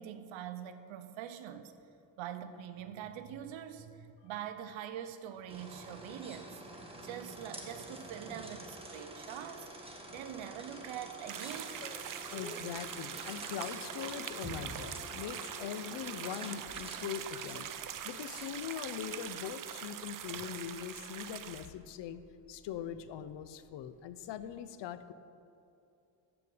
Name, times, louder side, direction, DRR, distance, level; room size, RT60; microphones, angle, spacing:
voice 1, 0.0-1.7 2.2-6.6 7.0-9.7 10.1-11.8, right 9 dB, 90° right, 9 dB, 0.9 m, -44 dB
sound 1, 5.5-19.9, right 1 dB, 10° right, 1.5 m, -48 dB
sound 2, 9.1-24.6, left 2 dB, 20° left, 0.6 m, -58 dB
sound 3, 11.3-21.7, right 10 dB, 45° right, 0.6 m, -43 dB
voice 2, 12.3-22.2 22.5-25.1, left 9 dB, 65° left, 13 dB, 0.8 m, -42 dB
14.0 x 5.1 x 8.5 m, 2.7 s
cardioid pair, 120°, 45 cm